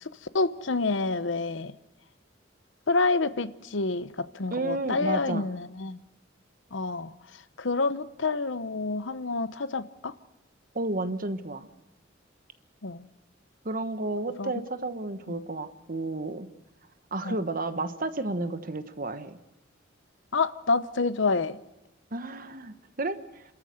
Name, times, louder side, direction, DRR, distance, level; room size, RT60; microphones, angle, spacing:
voice 1, 0.0-1.7 2.9-6.0 6.7-7.1 7.6-10.1 12.8-13.1 14.4-14.5 15.3-15.4 17.2-17.4 20.3-21.6, left 3 dB, 80° left, 0.9 m, -28 dB
voice 2, 4.5-5.5 10.7-11.7 13.6-16.5 17.1-19.4 22.1-23.4, right 2 dB, 50° right, 1.1 m, -32 dB
28.5 x 13.5 x 7.9 m
head